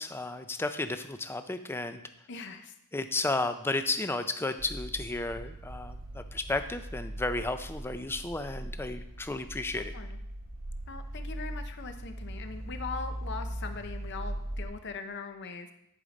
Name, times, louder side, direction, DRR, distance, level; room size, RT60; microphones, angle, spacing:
voice 1, 0.0-2.0 2.9-9.9, left 2 dB, 10° left, 9 dB, 0.4 m, -33 dB
voice 2, 2.3-2.7 9.9-10.2 10.9-15.7, left 4 dB, 55° left, 7 dB, 0.7 m, -41 dB
sound 1, 4.6-14.7, right 1 dB, 90° right, 1.5 m, -40 dB
10.5 x 5.1 x 4.0 m, 0.78 s
head